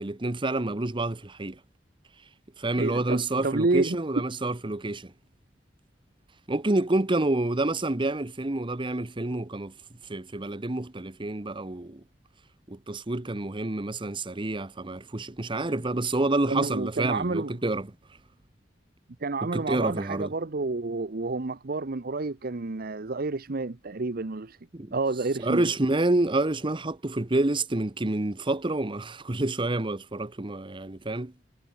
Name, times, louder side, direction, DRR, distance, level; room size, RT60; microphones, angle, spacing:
voice 1, 0.0-1.6 2.6-5.1 6.5-9.7 10.1-12.0 12.7-17.9 19.4-20.3 24.7-25.0 25.4-31.3, right 2 dB, 25° right, 1.0 m, -28 dB
voice 2, 2.8-4.0 16.5-17.5 19.2-24.6 24.9-25.7, right 3 dB, 55° right, 0.9 m, -29 dB
head